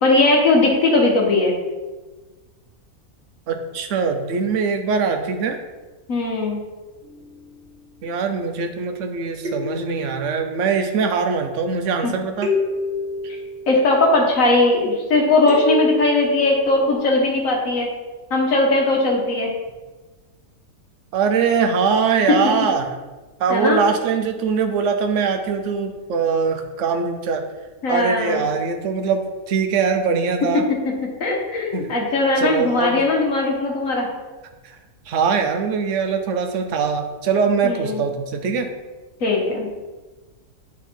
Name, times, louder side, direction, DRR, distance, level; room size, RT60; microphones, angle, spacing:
voice 1, 0.0-1.5 6.1-6.6 12.0-12.1 13.3-13.4 13.7-17.9 18.3-19.5 23.5-23.8 27.8-28.4 31.2-34.1 37.6-38.0 39.2-39.7, left 2 dB, 65° left, 0 dB, 1.6 m, -19 dB
voice 2, 3.5-5.6 8.0-12.5 21.1-22.9 23.4-27.4 27.9-30.6 31.7-31.9 32.4-33.0 35.1-38.7, right 5 dB, 60° right, 6 dB, 1.0 m, -22 dB
sound 1, 7.0-7.6 9.4-10.8 12.4-14.4 15.5-16.9, left 2 dB, 40° right, 1.2 m, -28 dB
9.1 x 3.6 x 4.4 m, 1.2 s
omnidirectional pair, 1.6 m